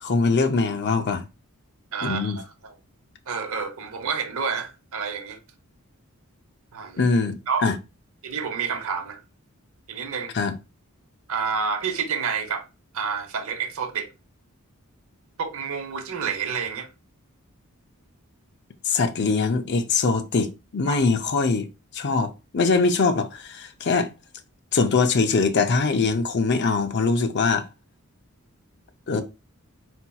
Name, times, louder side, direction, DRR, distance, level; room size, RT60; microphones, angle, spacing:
voice 1, 0.0-1.2 2.0-2.4 7.0-7.8 10.3-10.5 18.8-21.6 21.9-24.1 24.7-27.7 29.1-29.2, left 4 dB, 50° left, 0.6 m, -22 dB
voice 2, 1.9-2.7 3.3-5.4 6.7-7.0 7.5-7.7 8.2-9.2 9.9-10.3 11.3-12.6 12.9-14.1 15.4-16.9 20.9-21.0, right 6 dB, 70° right, 0.8 m, -29 dB
4.3 x 4.3 x 2.3 m
head